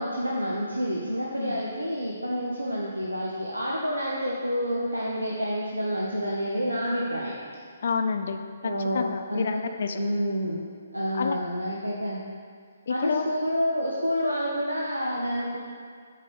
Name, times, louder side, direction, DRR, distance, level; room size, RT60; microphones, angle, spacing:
voice 1, 0.0-7.4 8.6-9.6 9.9-10.6 10.9-12.2 12.9-15.6, equal, 80° right, -4 dB, 1.0 m, -28 dB
voice 2, 7.8-10.0 11.1-11.4 12.9-13.3, left 5 dB, 50° left, 7 dB, 0.6 m, -29 dB
8.5 x 4.8 x 5.1 m, 2.1 s
figure-of-eight pair, 135°, 0 cm